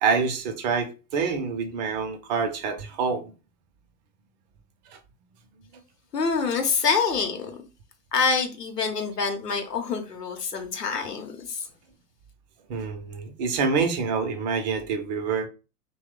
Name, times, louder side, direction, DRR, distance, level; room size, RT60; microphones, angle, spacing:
voice 1, 0.0-3.3 4.9-5.0 12.7-15.5, right 5 dB, 30° right, 0.5 m, -26 dB
voice 2, 6.1-7.5 8.1-11.6, left 5 dB, 80° left, 0.9 m, -26 dB
2.8 x 2.2 x 3.6 m
figure-of-eight pair, 100°, 47 cm